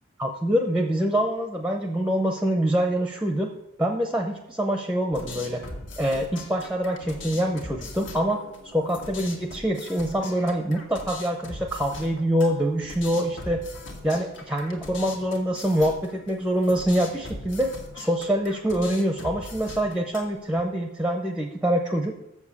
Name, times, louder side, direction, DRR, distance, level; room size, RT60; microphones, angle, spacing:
voice 1, 0.2-3.5 3.8-5.6 6.0-13.6 14.0-22.1, equal, 5° right, 3 dB, 0.6 m, -25 dB
sound 1, 5.1-20.6, left 2 dB, 60° left, 1.6 m, -41 dB
7.1 x 7.0 x 7.0 m, 0.85 s
head